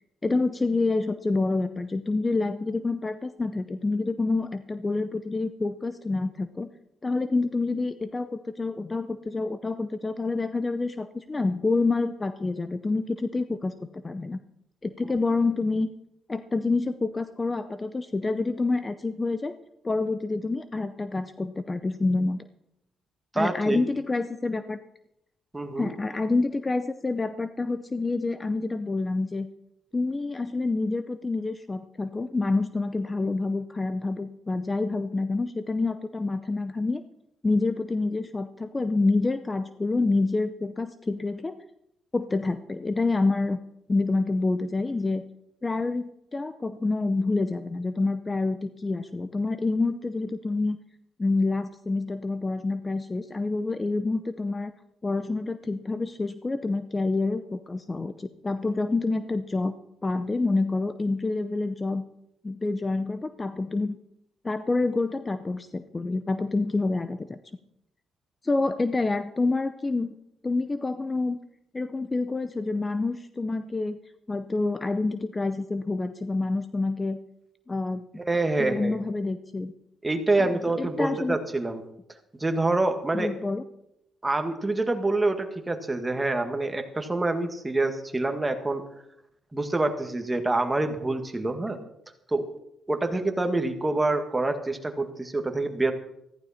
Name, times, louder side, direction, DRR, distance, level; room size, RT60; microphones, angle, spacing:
voice 1, 0.2-6.7 7.0-14.4 14.8-15.9 16.3-19.5 19.8-22.5 23.3-24.8 25.8-29.5 29.9-37.0 37.4-41.6 42.1-43.6 43.9-45.2 45.6-50.8 51.2-54.7 55.0-59.7 60.0-62.0 62.4-64.0 64.4-67.4 68.4-70.1 70.4-71.4 71.7-74.0 74.3-77.2 77.7-78.0 78.6-79.7 80.4-81.4 83.1-83.6, left 3 dB, 25° left, 11 dB, 0.6 m, -27 dB
voice 2, 23.3-23.8 25.5-25.9 78.2-79.0 80.0-81.8 82.4-83.3 84.2-88.8 89.5-91.8 92.3-92.4 92.9-95.9, right 2 dB, 15° right, 5 dB, 1.8 m, -26 dB
14.5 x 14.5 x 4.3 m, 0.81 s
cardioid pair, 90°, 0 cm